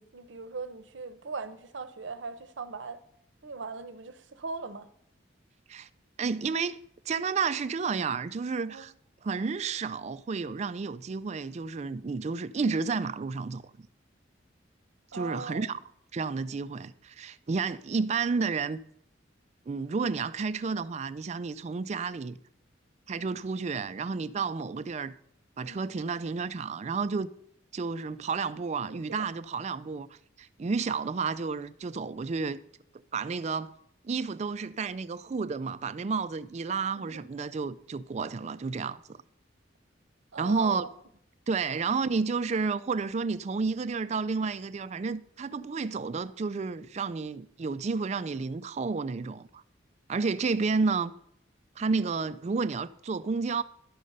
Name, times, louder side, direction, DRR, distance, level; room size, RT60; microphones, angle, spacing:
voice 1, 0.0-3.0 3.4-4.9 8.7-8.8 15.1-15.7 25.6-25.8 28.9-29.3 37.0-37.2 40.3-40.9 41.7-41.8, right 4 dB, 75° right, 0.7 m, -40 dB
voice 2, 6.2-6.8 7.1-8.9 9.2-13.6 15.1-15.8 16.1-18.8 19.7-22.4 23.1-25.1 25.6-27.3 27.7-30.1 30.4-32.6 33.1-33.7 34.0-39.2 40.4-40.9 41.5-49.6 50.1-51.1 51.8-53.6, right 4 dB, 35° right, 0.3 m, -31 dB
11.0 x 6.4 x 5.4 m
head